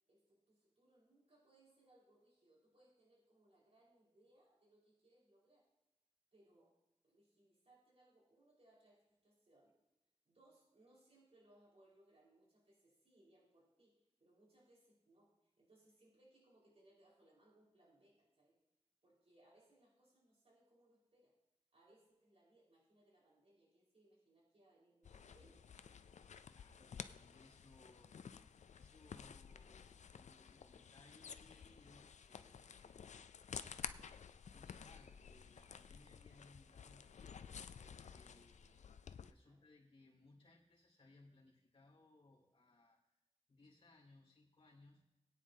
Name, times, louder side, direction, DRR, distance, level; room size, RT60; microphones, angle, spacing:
voice 1, 0.1-5.7 6.3-6.7 7.0-9.8 10.2-13.9 14.2-18.6 19.0-21.3 21.7-25.7 39.4-39.6, right 1 dB, 60° right, -4 dB, 4.7 m, -70 dB
sound 1, 25.0-39.3, left 7 dB, 85° left, 0.4 m, -53 dB
voice 2, 26.5-28.2 28.7-33.0 34.5-37.5 37.8-38.9 39.3-43.0 43.5-45.0, left 2 dB, 50° left, -5 dB, 2.8 m, -66 dB
20.0 x 9.3 x 2.8 m, 0.97 s
wide cardioid pair, 75°, 12 cm